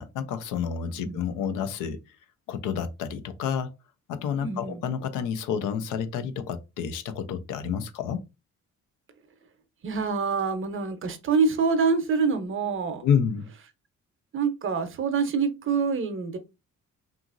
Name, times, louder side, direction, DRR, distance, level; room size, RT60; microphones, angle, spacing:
voice 1, 0.0-2.0 2.5-3.7 4.1-8.3 13.0-13.5, left 7 dB, 85° left, 0.5 m, -29 dB
voice 2, 4.4-4.8 9.8-13.0 14.3-16.4, right 5 dB, 45° right, 0.6 m, -26 dB
2.8 x 2.5 x 2.4 m
cardioid pair, 90°, 30 cm